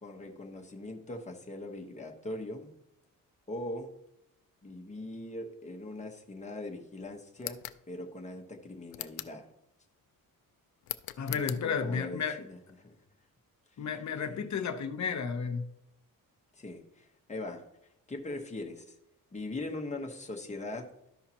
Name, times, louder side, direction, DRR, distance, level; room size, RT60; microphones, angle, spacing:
voice 1, 0.0-2.7 3.5-3.9 4.6-7.6 7.9-9.5 11.3-13.0 14.3-14.4 16.6-17.6 18.1-18.9 19.3-20.9, left 2 dB, 20° left, 2 dB, 1.2 m, -41 dB
sound 1, 7.4-7.8 8.9-9.4 10.8-11.6, left 15 dB, 85° left, 0.5 m, -40 dB
voice 2, 11.2-12.4 13.8-15.6, left 6 dB, 55° left, 7 dB, 1.0 m, -32 dB
13.0 x 5.6 x 3.0 m, 0.82 s
cardioid pair, 100°, 35 cm